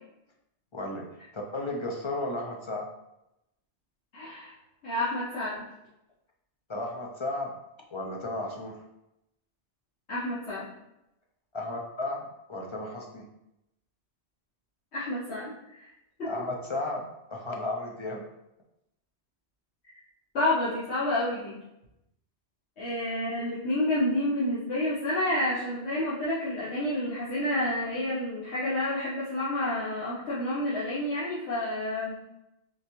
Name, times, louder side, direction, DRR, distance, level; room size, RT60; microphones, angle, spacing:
voice 1, 0.7-2.9 6.7-7.5 7.9-8.8 11.5-13.2 16.2-18.2, left 2 dB, 50° left, -1 dB, 0.3 m, -34 dB
voice 2, 4.1-4.5 4.8-5.6 10.1-10.7 14.9-15.9 16.2-16.3 20.3-21.5 22.8-32.2, left 1 dB, 70° left, -11 dB, 1.3 m, -29 dB
4.1 x 3.3 x 3.0 m, 0.87 s
omnidirectional pair, 1.2 m